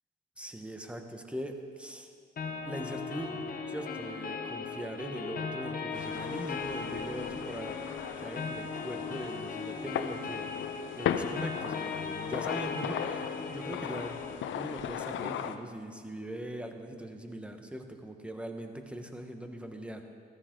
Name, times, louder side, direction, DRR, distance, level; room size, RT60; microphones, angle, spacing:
voice 1, 0.4-2.1 2.7-7.8 8.2-20.0, right 1 dB, 5° right, 5 dB, 1.3 m, -41 dB
sound 1, 2.4-14.4, left 5 dB, 45° left, 1.2 m, -38 dB
sound 2, 5.9-15.6, left 9 dB, 75° left, 0.7 m, -38 dB
14.0 x 13.5 x 3.9 m, 2.1 s
cardioid pair, 90°, 20 cm